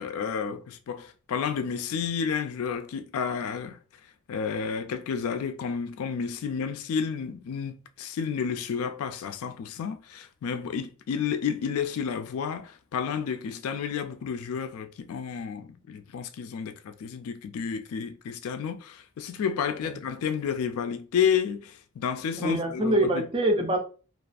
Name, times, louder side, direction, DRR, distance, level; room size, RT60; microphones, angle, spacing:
voice 1, 0.0-3.8 4.3-23.3, left 7 dB, 80° left, 0.3 m, -31 dB
voice 2, 22.3-23.8, right 1 dB, 25° right, 0.4 m, -24 dB
2.3 x 2.3 x 2.4 m
head